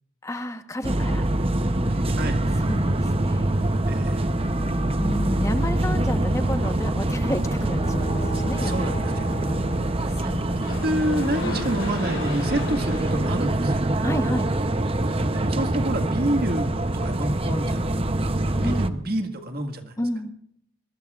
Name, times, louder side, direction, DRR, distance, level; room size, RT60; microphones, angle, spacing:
voice 1, 0.2-1.3 2.6-3.5 5.0-8.8 10.2-10.5 11.4-11.7 14.0-14.5 18.6-18.8 19.1-19.2 20.0-20.3, left 1 dB, 15° left, 7 dB, 1.1 m, -30 dB
sound 1, 0.8-18.9, right 1 dB, 30° right, 0.8 m, -24 dB
voice 2, 3.9-4.3 8.5-9.8 10.2-13.8 15.1-17.8 18.6-19.9, right 1 dB, 50° right, 5 dB, 1.8 m, -29 dB
sound 2, 7.6-12.5, right 1 dB, 40° left, 2.5 m, -39 dB
sound 3, 10.4-14.6, left 2 dB, 65° left, 4.4 m, -36 dB
25.0 x 20.5 x 2.5 m, 0.74 s
head